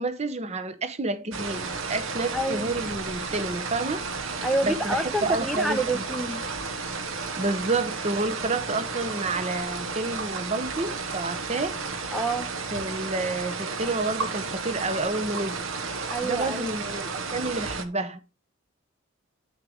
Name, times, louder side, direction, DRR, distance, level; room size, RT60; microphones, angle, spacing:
voice 1, 0.0-4.0 4.6-6.0 7.4-11.8 12.7-15.6 16.2-18.2, right 2 dB, 30° right, 0.8 m, -29 dB
sound 1, 1.3-17.8, right 4 dB, 60° right, 1.2 m, -33 dB
voice 2, 2.3-2.7 4.4-6.4 12.1-12.5 16.1-16.7, right 1 dB, ahead, 0.5 m, -28 dB
9.6 x 6.5 x 3.5 m
head